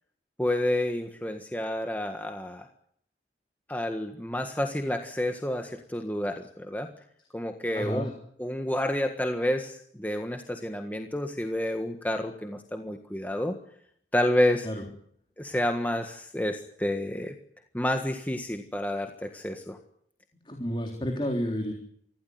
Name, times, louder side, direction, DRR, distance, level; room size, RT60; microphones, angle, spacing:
voice 1, 0.4-2.7 3.7-6.9 7.3-8.1 8.4-13.5 14.1-14.7 15.4-17.3 17.7-19.8, left 1 dB, 10° left, 5 dB, 1.6 m, -29 dB
voice 2, 7.7-8.1 14.6-14.8 20.5-21.7, equal, 30° left, 2 dB, 3.6 m, -30 dB
25.0 x 16.5 x 9.5 m, 0.67 s
head